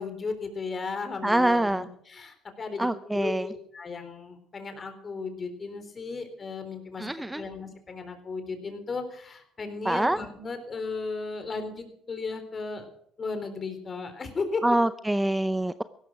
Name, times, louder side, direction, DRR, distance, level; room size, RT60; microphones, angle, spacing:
voice 1, 0.0-7.1 7.3-12.9 13.2-14.6, left 4 dB, 30° left, 8 dB, 4.0 m, -35 dB
voice 2, 1.2-1.9 2.8-3.5 7.0-7.4 9.8-10.2 14.6-15.8, right 1 dB, 5° right, 13 dB, 0.6 m, -25 dB
16.5 x 13.0 x 6.1 m, 0.67 s
cardioid pair, 100°, 0 cm